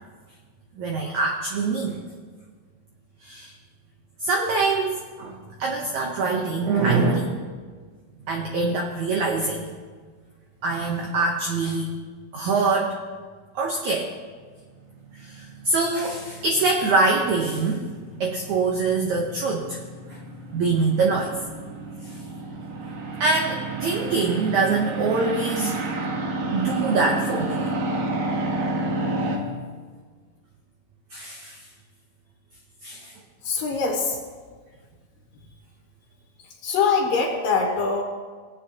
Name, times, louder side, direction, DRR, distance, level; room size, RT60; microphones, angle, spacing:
voice 1, 0.8-2.0 3.2-3.5 4.2-7.4 8.2-9.7 10.6-11.9 12.3-12.9 13.5-14.1 15.2-17.8 18.2-19.8 20.1-20.2 20.5-21.4 22.0-22.2 23.2-25.8 26.5-27.7 31.1-31.6 32.8-33.1, right 3 dB, 85° right, 0 dB, 1.6 m, -24 dB
sound 1, 14.7-29.4, right 2 dB, 65° right, 2.8 m, -31 dB
voice 2, 33.4-34.2 36.4-38.0, left 5 dB, 65° left, -1 dB, 2.8 m, -23 dB
20.5 x 8.4 x 2.9 m, 1.5 s
omnidirectional pair, 4.7 m